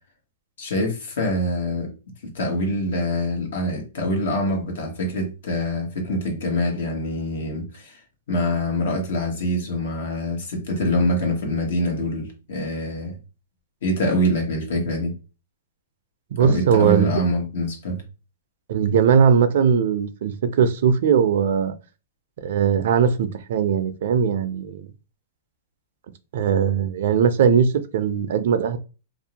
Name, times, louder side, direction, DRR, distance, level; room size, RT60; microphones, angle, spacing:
voice 1, 0.6-1.9 2.2-8.0 8.3-13.2 13.8-15.1 16.4-18.0, left 1 dB, 70° left, 1.0 m, -25 dB
voice 2, 16.3-17.1 18.7-21.7 22.4-24.9 26.3-28.8, right 7 dB, 65° right, 0.4 m, -19 dB
2.6 x 2.0 x 2.8 m
hypercardioid pair, 150°, 0 cm